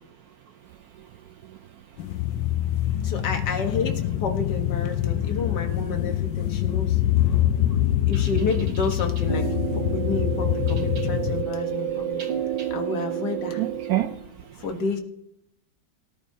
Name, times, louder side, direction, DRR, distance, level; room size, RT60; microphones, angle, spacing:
sound 1, 2.0-11.4, left 12 dB, 75° left, 1.3 m, -25 dB
voice 1, 3.0-7.0 8.1-9.5 9.8-12.2 12.7-13.6 14.6-15.0, left 3 dB, 60° left, 4 dB, 1.7 m, -30 dB
sound 2, 9.2-14.2, right 10 dB, 55° right, 2.4 m, -30 dB
voice 2, 12.2-12.7 13.6-14.1, right 14 dB, 80° right, 8 dB, 0.8 m, -28 dB
18.0 x 11.5 x 2.7 m, 0.81 s
omnidirectional pair, 2.1 m